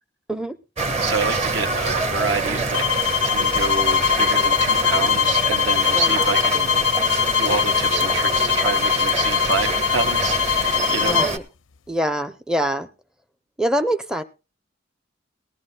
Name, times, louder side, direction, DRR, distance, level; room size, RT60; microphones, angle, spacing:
sound 1, 0.8-11.4, right 3 dB, 35° right, 1.3 m, -26 dB
voice 1, 1.0-2.9 3.2-6.7 7.4-11.2, right 4 dB, 65° right, 1.5 m, -28 dB
sound 2, 2.7-11.3, left 7 dB, 90° left, 0.5 m, -21 dB
voice 2, 11.0-11.4 11.9-12.9 13.6-14.2, equal, 5° right, 0.5 m, -24 dB
19.0 x 14.5 x 2.2 m
head